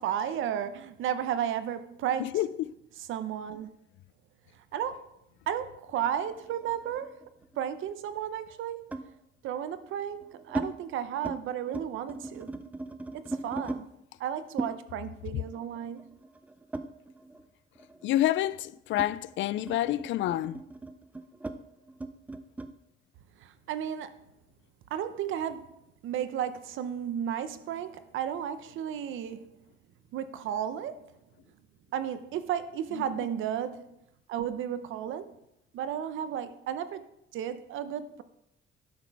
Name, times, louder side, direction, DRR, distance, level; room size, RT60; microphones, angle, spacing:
voice 1, 0.0-2.4 3.1-3.7 4.7-5.1 5.5-7.2 7.6-8.9 9.4-12.5 13.1-13.9 14.2-16.1 23.4-24.1 24.9-29.5 30.1-31.1 31.9-33.9 34.3-35.4 35.7-37.0 37.3-38.2, right 9 dB, 90° right, 0.7 m, -33 dB
voice 2, 2.2-2.7 18.0-20.6 32.9-33.0, left 14 dB, 75° left, 0.4 m, -28 dB
sound 1, 6.0-7.6 8.9-9.2 9.9-10.7 11.1-11.4 11.7-13.8 14.6-17.5 17.8-22.7, right 2 dB, 5° right, 0.4 m, -39 dB
12.0 x 6.1 x 4.7 m
cardioid pair, 170°, 20 cm